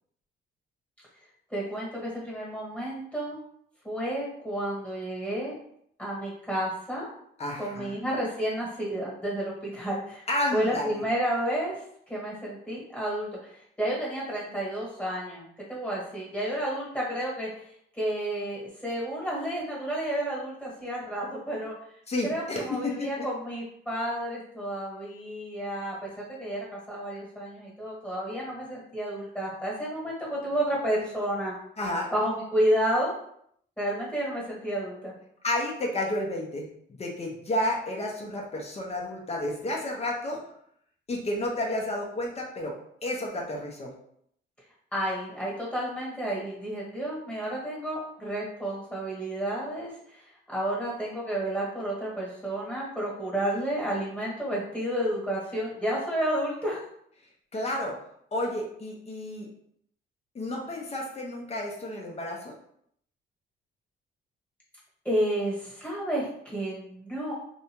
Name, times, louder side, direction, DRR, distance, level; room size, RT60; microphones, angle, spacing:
voice 1, 1.5-3.4 3.8-5.5 6.0-7.1 7.6-10.2 10.5-11.7 12.1-17.6 17.9-21.7 22.2-26.1 26.4-31.5 32.1-33.1 33.8-35.1 44.9-56.9 65.0-67.3, right 1 dB, 5° left, -6 dB, 1.4 m, -31 dB
voice 2, 7.4-8.0 10.3-11.0 22.1-23.3 31.8-32.1 35.4-40.4 41.1-43.9 57.5-58.0 58.3-59.5 60.3-62.5, left 1 dB, 30° left, -1 dB, 0.7 m, -31 dB
2.7 x 2.2 x 2.9 m, 0.69 s
cardioid pair, 90°, 20 cm